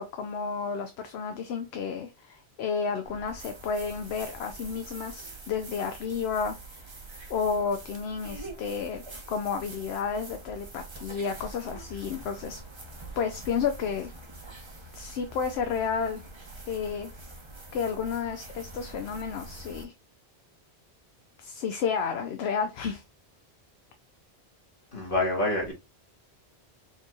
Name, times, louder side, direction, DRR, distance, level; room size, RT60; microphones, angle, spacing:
voice 1, 0.0-6.9 7.3-9.0 9.3-12.6 13.2-14.1 14.9-16.2 16.7-17.1 17.7-19.9 21.4-23.0, left 6 dB, 75° left, 0.9 m, -31 dB
sound 1, 3.0-19.8, right 2 dB, 30° right, 0.7 m, -45 dB
voice 2, 24.9-25.7, left 2 dB, 55° left, 1.8 m, -27 dB
4.6 x 3.0 x 2.3 m
omnidirectional pair, 1.1 m